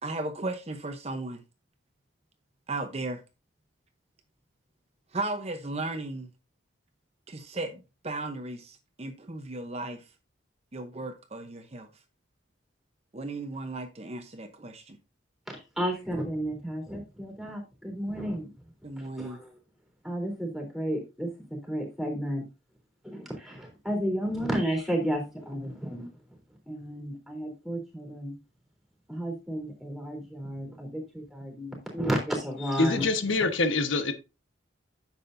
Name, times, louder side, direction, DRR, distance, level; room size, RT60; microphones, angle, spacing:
voice 1, 0.0-1.4 2.7-3.2 5.1-6.3 7.3-10.0 10.7-11.9 13.1-15.0 18.8-19.4, right 2 dB, 35° right, 0.8 m, -35 dB
voice 2, 15.5-18.5 19.2-19.5 20.0-22.4 23.0-26.1 26.7-28.3 29.1-33.1, equal, ahead, 3.5 m, -32 dB
voice 3, 32.8-34.1, left 3 dB, 80° left, 1.2 m, -25 dB
9.9 x 7.2 x 2.6 m
head